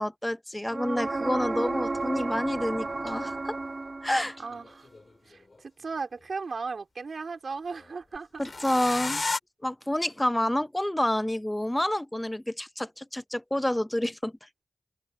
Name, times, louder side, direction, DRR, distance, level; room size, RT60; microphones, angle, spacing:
voice 1, 0.0-3.6 4.0-4.4 8.4-9.2 9.6-14.6, left 1 dB, 15° left, 0.7 m, -29 dB
sound 1, 0.7-4.5 8.2-8.3, right 3 dB, 50° right, 1.9 m, -32 dB
sound 2, 3.2-3.3 4.5-5.6 8.3-9.4, left 3 dB, 55° left, 2.4 m, -32 dB
voice 2, 4.4-4.9 5.3-8.4, right 4 dB, 80° right, 3.6 m, -36 dB
cardioid pair, 50°, 0 cm